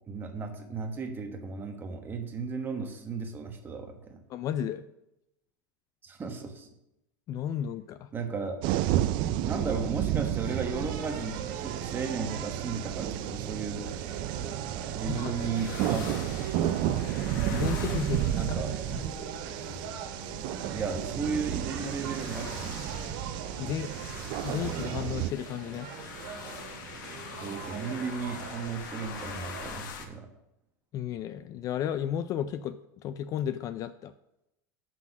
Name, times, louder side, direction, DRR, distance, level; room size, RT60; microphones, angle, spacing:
voice 1, 0.1-4.2 6.0-6.7 8.1-8.7 9.4-13.9 14.9-17.3 18.3-18.7 20.7-23.3 27.4-30.3, right 5 dB, 20° right, 4 dB, 1.3 m, -35 dB
voice 2, 4.3-4.8 7.3-8.1 15.1-15.5 17.5-18.4 18.9-19.0 23.6-23.9 24.4-25.9 30.9-34.1, left 9 dB, 35° left, 13 dB, 0.3 m, -33 dB
sound 1, 8.6-25.3, right 12 dB, 45° right, 0.4 m, -32 dB
sound 2, 10.4-29.7, right 6 dB, 70° right, 1.9 m, -41 dB
sound 3, 15.5-30.1, left 6 dB, 80° left, 1.3 m, -45 dB
7.3 x 6.1 x 6.0 m, 0.87 s
supercardioid pair, 145°, 10 cm